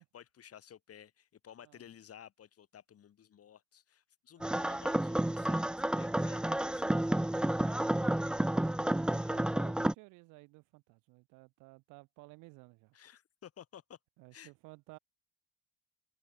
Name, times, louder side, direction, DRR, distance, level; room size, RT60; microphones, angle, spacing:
voice 1, 0.0-6.9 9.1-9.4 12.9-14.0 14.3-14.5, left 9 dB, 50° left, 7.6 m, -55 dB
sound 1, 4.4-9.9, right 1 dB, 5° right, 0.4 m, -31 dB
voice 2, 8.7-13.0 14.2-15.0, right 25 dB, 80° right, 7.5 m, -56 dB
supercardioid pair, 75°, 30 cm